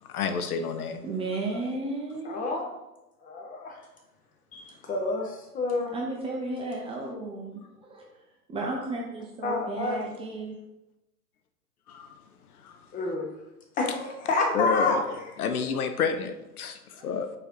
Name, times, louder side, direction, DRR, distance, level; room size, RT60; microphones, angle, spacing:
voice 1, 0.1-1.0 11.9-12.1 12.6-12.7 14.5-15.1 15.4-17.3, left 5 dB, 65° left, 7 dB, 0.8 m, -29 dB
voice 2, 1.0-2.5 5.1-5.2 5.9-8.0 8.5-10.6 16.9-17.4, right 2 dB, 10° right, -1 dB, 0.6 m, -34 dB
voice 3, 2.2-2.7 3.2-3.8 4.5-5.9 9.4-10.0 12.9-13.3 13.8-15.0, left 3 dB, 15° left, 1 dB, 1.0 m, -28 dB
4.9 x 4.4 x 4.5 m, 0.97 s
hypercardioid pair, 115°, 47 cm